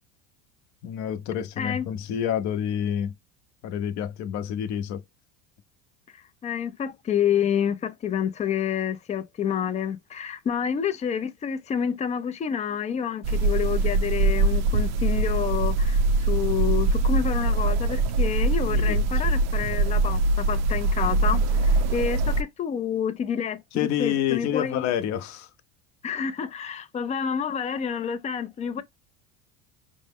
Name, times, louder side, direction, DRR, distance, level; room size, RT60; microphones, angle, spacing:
voice 1, 0.8-3.1 3.6-5.0 18.6-19.0 23.7-25.5, left 9 dB, 50° left, 0.7 m, -28 dB
voice 2, 6.4-24.9 26.0-28.8, left 8 dB, 20° left, 0.4 m, -28 dB
sound 1, 13.2-22.4, right 3 dB, 50° right, 0.5 m, -23 dB
5.1 x 2.1 x 3.4 m
cardioid pair, 130°, 34 cm